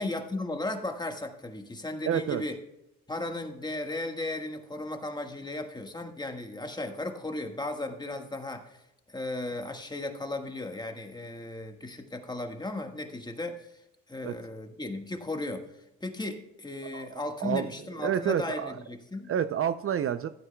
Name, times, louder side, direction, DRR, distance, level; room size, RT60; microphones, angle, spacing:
voice 1, 0.0-2.5 3.1-8.8 9.1-13.8 14.1-19.3, left 2 dB, 15° left, 4 dB, 1.5 m, -35 dB
voice 2, 2.1-2.4 14.2-14.3 16.9-17.1 17.4-17.7 18.0-18.8 19.3-20.3, right 9 dB, 45° right, 11 dB, 0.5 m, -28 dB
15.0 x 9.0 x 2.2 m, 0.88 s
cardioid pair, 90°, 30 cm